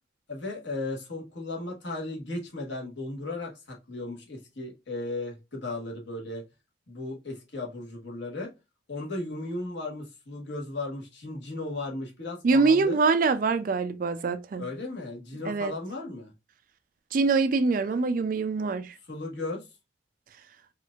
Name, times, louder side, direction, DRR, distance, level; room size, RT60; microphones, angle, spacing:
voice 1, 0.3-6.4 6.9-8.5 8.9-13.0 14.6-16.3 19.1-19.7, left 2 dB, 70° left, 1.3 m, -36 dB
voice 2, 12.4-14.6 15.5-15.7 17.1-18.9, right 4 dB, 45° right, 0.3 m, -24 dB
4.4 x 2.4 x 2.3 m
head